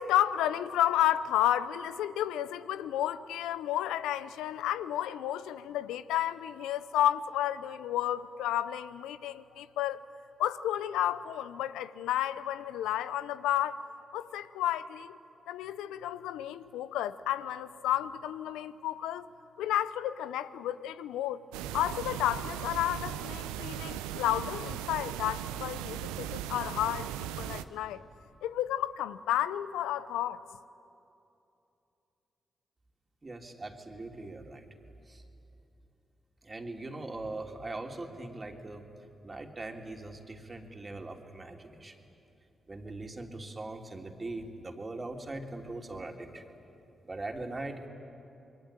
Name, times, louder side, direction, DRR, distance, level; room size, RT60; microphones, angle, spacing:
voice 1, 0.0-10.0 10.4-13.8 14.1-15.2 15.5-19.3 19.6-21.4 21.7-28.0 28.4-30.4, left 12 dB, 85° left, 0.6 m, -31 dB
sound 1, 21.5-27.6, right 10 dB, 90° right, 0.6 m, -38 dB
voice 2, 33.2-34.6 35.1-35.2 36.4-38.8 39.2-41.9 42.7-46.5 47.0-47.9, right 2 dB, 35° right, 3.2 m, -41 dB
27.0 x 22.0 x 8.9 m
hypercardioid pair, 40°, 0 cm